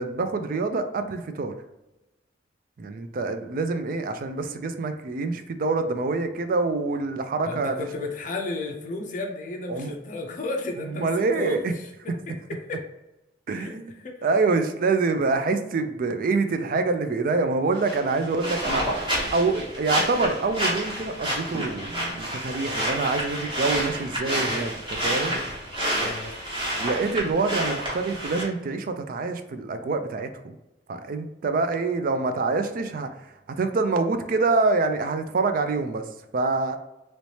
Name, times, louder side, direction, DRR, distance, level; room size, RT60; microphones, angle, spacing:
voice 1, 0.0-1.5 2.8-7.9 9.7-9.9 10.9-11.7 13.5-25.4 26.8-30.6 30.9-36.8, right 3 dB, 50° right, 8 dB, 0.4 m, -26 dB
voice 2, 7.4-11.9 12.7-12.8 13.5-13.7 14.0-14.2 25.3-25.5 26.0-26.3, left 2 dB, 45° left, 2 dB, 0.4 m, -33 dB
sound 1, 17.8-28.4, equal, 25° right, 1.1 m, -29 dB
3.1 x 3.1 x 2.8 m, 0.96 s
head